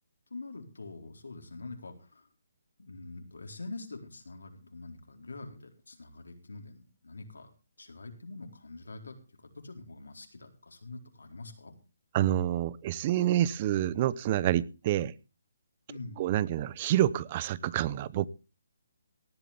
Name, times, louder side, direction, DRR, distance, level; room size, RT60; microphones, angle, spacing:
voice 1, 0.3-2.3 2.8-7.5 7.8-9.1 9.6-11.7 15.9-16.3, left 3 dB, 80° left, 4.1 m, -45 dB
voice 2, 12.1-15.1 16.2-18.3, right 12 dB, 35° right, 0.7 m, -27 dB
18.0 x 12.5 x 3.5 m
figure-of-eight pair, 145°, 0 cm